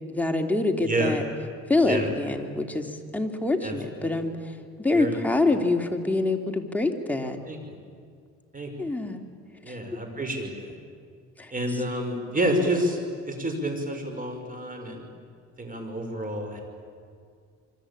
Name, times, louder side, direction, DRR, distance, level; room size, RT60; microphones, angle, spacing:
voice 1, 0.1-1.2 1.7-4.3 4.8-7.4 8.8-9.2 9.7-9.8 11.4-11.5, left 2 dB, 5° left, 3 dB, 2.8 m, -25 dB
voice 2, 0.9-1.2 1.8-2.1 3.6-4.2 4.9-5.3 7.2-7.8 8.5-8.9 9.6-10.7 11.5-13.0 13.3-15.1 15.6-16.6, right 1 dB, 25° right, 4 dB, 6.1 m, -29 dB
27.0 x 24.5 x 8.7 m, 2.2 s
cardioid pair, 90°, 30 cm